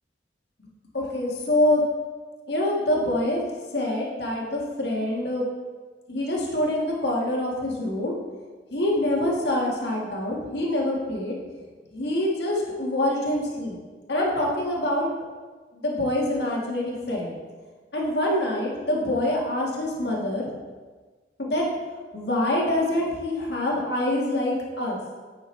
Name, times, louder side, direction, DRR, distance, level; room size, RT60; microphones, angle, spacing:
voice 1, 0.9-1.8 2.5-3.4 3.7-5.4 6.1-8.1 8.7-11.3 11.9-13.8 14.1-15.1 15.7-17.3 17.9-20.5 21.4-21.6 22.1-25.0, left 1 dB, 65° left, -3 dB, 1.7 m, -25 dB
9.3 x 6.2 x 3.3 m, 1.4 s
head